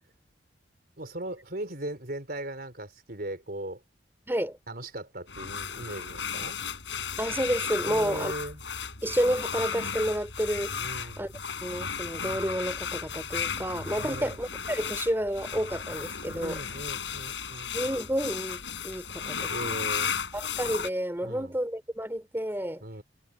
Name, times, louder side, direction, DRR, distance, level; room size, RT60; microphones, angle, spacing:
voice 1, 1.0-3.8 4.7-6.6 7.9-8.6 10.8-11.3 14.0-14.4 16.3-17.9 19.5-20.1 21.2-21.6 22.8-23.0, right 1 dB, 55° right, 4.3 m, -38 dB
voice 2, 4.3-4.6 7.2-8.3 9.0-11.3 11.6-16.6 17.7-19.5 20.3-22.8, equal, 10° right, 2.9 m, -30 dB
sound 1, 5.3-20.9, left 6 dB, 70° left, 7.7 m, -34 dB
head